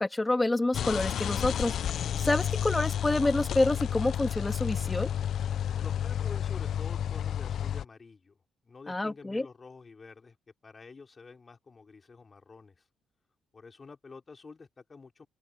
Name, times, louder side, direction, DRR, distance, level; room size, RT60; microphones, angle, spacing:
voice 1, 0.0-5.1 8.9-9.5, left 2 dB, 15° left, 2.4 m, -28 dB
sound 1, 0.7-7.8, left 9 dB, 65° left, 0.4 m, -31 dB
voice 2, 5.8-8.4 8.6-10.4 10.6-12.8 13.5-15.3, left 4 dB, 35° left, 4.1 m, -49 dB
open air
cardioid pair, 90°, 0 cm